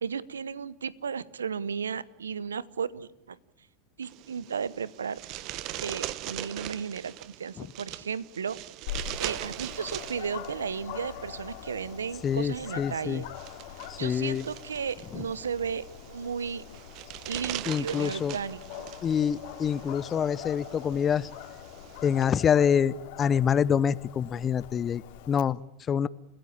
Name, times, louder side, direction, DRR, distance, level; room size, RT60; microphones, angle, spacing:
voice 1, 0.0-3.4 4.0-5.2 5.8-8.6 9.2-13.2 14.0-16.6 17.3-19.0, right 6 dB, 90° right, 19 dB, 1.0 m, -34 dB
sound 1, 4.0-22.2, right 15 dB, 50° right, 1.2 m, -42 dB
Dog, 8.9-25.4, left 12 dB, 65° left, 3.3 m, -43 dB
voice 2, 12.2-13.2 13.9-14.5 15.1-15.2 17.7-18.4 19.0-21.3 22.0-26.1, left 8 dB, 30° left, 19 dB, 0.9 m, -26 dB
29.5 x 16.0 x 8.7 m, 0.80 s
hypercardioid pair, 95°, 0 cm